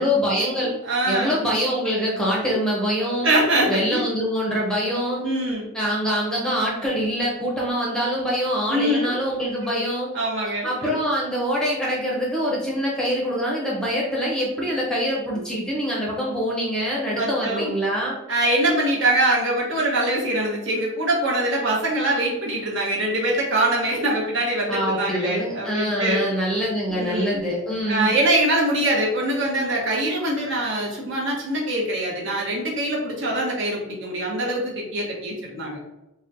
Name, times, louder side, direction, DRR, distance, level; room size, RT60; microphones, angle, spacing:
voice 1, 0.0-0.7 1.1-3.3 3.7-5.2 5.7-10.1 10.6-18.2 24.7-28.1, equal, 5° left, -5 dB, 0.6 m, -24 dB
voice 2, 0.8-1.4 2.5-2.6 3.2-4.0 5.2-5.7 8.7-9.1 9.6-9.8 10.1-10.9 17.2-17.7 18.3-26.2 26.9-27.4 27.9-35.8, right 1 dB, 60° right, -3 dB, 1.0 m, -23 dB
4.0 x 2.1 x 2.6 m, 0.92 s
head